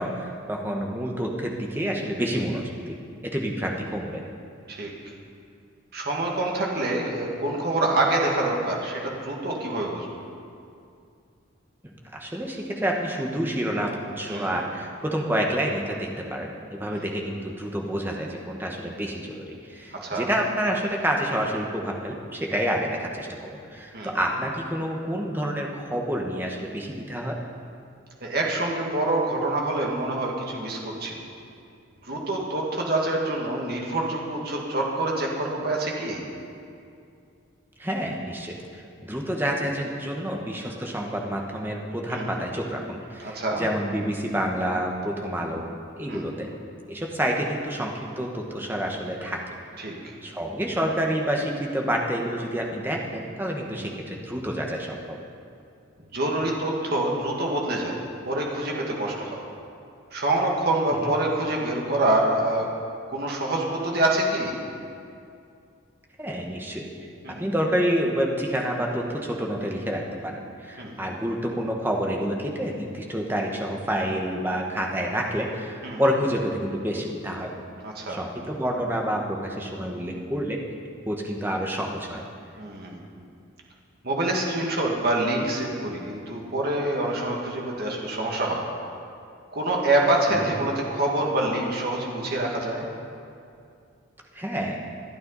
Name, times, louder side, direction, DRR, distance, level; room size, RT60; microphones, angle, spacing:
voice 1, 0.0-2.9 3.2-4.2 11.8-27.4 37.8-45.7 46.0-46.5 46.9-49.4 49.8-49.9 50.2-55.2 60.9-61.1 66.2-67.1 67.4-77.6 78.1-80.6 81.1-82.2 90.3-90.5 94.3-94.8, equal, 10° right, 0 dB, 1.3 m, -28 dB
voice 2, 5.9-10.1 14.3-14.5 16.9-17.0 20.0-20.3 23.9-24.1 28.2-31.2 32.0-36.2 42.1-42.3 43.2-43.7 46.1-46.3 49.8-49.9 53.7-54.0 56.1-58.0 58.3-59.4 60.1-62.7 63.1-64.5 67.2-67.4 70.8-71.0 75.8-76.0 77.8-78.2 82.6-83.0 84.0-88.7 89.5-92.9, right 2 dB, 50° right, -2 dB, 2.1 m, -26 dB
26.5 x 9.1 x 4.1 m, 2.4 s
head